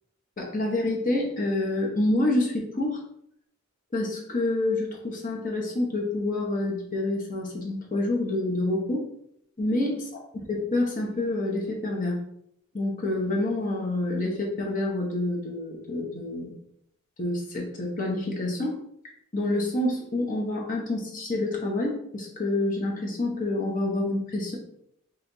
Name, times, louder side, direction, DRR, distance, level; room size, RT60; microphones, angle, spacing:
voice 1, 0.4-3.0 3.9-9.0 9.6-10.0 10.5-12.2 12.7-16.5 17.2-18.8 19.3-24.6, left 2 dB, 35° left, -1 dB, 0.8 m, -27 dB
5.6 x 2.9 x 2.6 m, 0.73 s
head